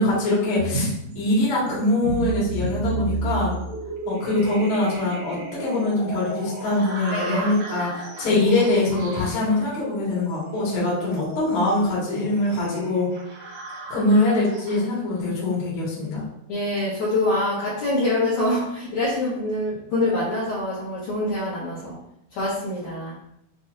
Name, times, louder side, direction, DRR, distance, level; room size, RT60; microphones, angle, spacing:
voice 1, 0.0-3.6 4.0-13.1 13.9-16.2, left 2 dB, 55° left, -7 dB, 1.4 m, -23 dB
sound 1, 0.5-15.2, right 2 dB, 90° right, 1.6 m, -33 dB
voice 2, 7.1-7.5 8.2-8.4 16.5-21.9 22.3-23.1, left 1 dB, 70° left, -9 dB, 1.7 m, -25 dB
6.8 x 2.7 x 2.5 m, 0.76 s
omnidirectional pair, 5.0 m